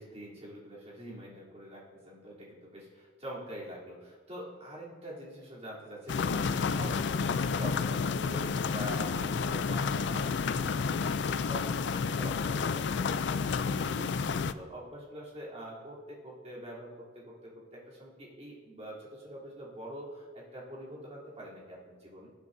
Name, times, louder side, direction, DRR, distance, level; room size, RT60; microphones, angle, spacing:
voice 1, 0.0-22.3, equal, 35° right, -6 dB, 3.3 m, -45 dB
sound 1, 6.1-14.5, left 5 dB, 70° left, 0.4 m, -30 dB
19.0 x 8.2 x 2.7 m, 1.5 s
head